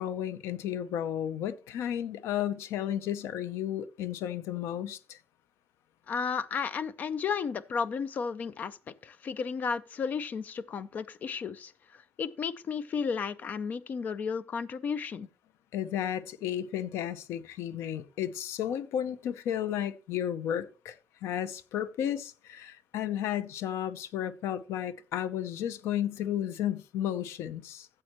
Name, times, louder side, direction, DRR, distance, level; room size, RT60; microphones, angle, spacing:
voice 1, 0.0-5.2 15.7-27.9, left 10 dB, 90° left, 0.6 m, -33 dB
voice 2, 6.1-8.8 9.0-15.3, left 6 dB, 40° left, 0.5 m, -33 dB
13.5 x 7.6 x 3.0 m
cardioid pair, 165°, 4 cm